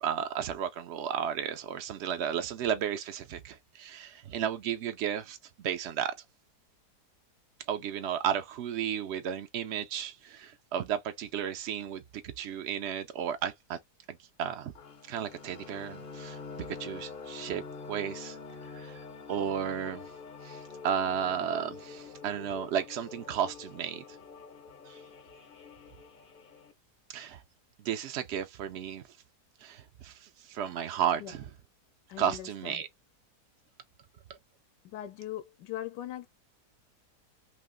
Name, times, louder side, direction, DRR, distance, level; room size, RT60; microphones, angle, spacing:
voice 1, 0.0-6.1 7.7-13.8 14.1-14.7 15.1-16.4 16.8-18.4 18.7-19.0 19.3-20.0 20.4-24.0 24.9-25.0 27.1-27.4 27.8-29.0 29.6-31.4 32.2-32.9, right 9 dB, 70° right, 0.6 m, -33 dB
sound 1, 14.8-26.7, left 4 dB, 50° left, 0.6 m, -46 dB
voice 2, 32.1-32.8 34.8-36.3, left 12 dB, 90° left, 1.2 m, -40 dB
3.3 x 2.8 x 3.7 m
omnidirectional pair, 1.8 m